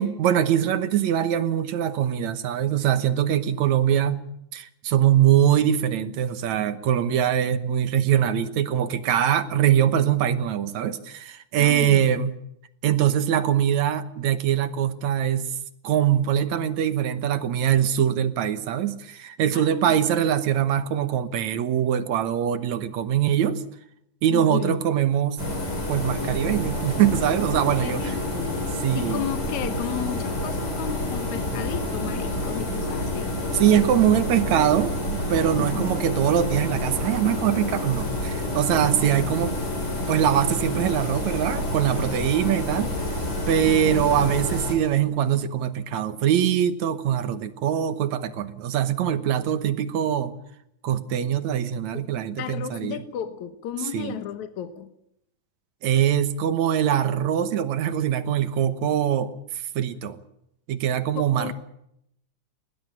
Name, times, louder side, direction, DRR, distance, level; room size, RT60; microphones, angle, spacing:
voice 1, 0.0-4.2 4.5-12.3 12.8-15.5 15.8-23.6 24.2-25.4 25.9-28.1 28.8-29.2 33.5-39.6 40.1-43.0 43.5-50.3 50.8-53.0 53.9-54.2 55.8-59.3 59.8-60.2 60.7-61.5, right 10 dB, 70° right, 2.3 m, -23 dB
voice 2, 11.6-12.1 19.5-20.0 24.3-24.8 27.8-28.6 28.9-33.4 35.6-35.9 38.7-39.0 42.2-42.6 43.7-44.1 51.9-52.1 52.4-54.9 61.2-61.5, left 10 dB, 70° left, 2.5 m, -34 dB
sound 1, 25.4-44.7, left 1 dB, 30° left, 5.6 m, -28 dB
20.5 x 19.0 x 8.7 m
omnidirectional pair, 3.6 m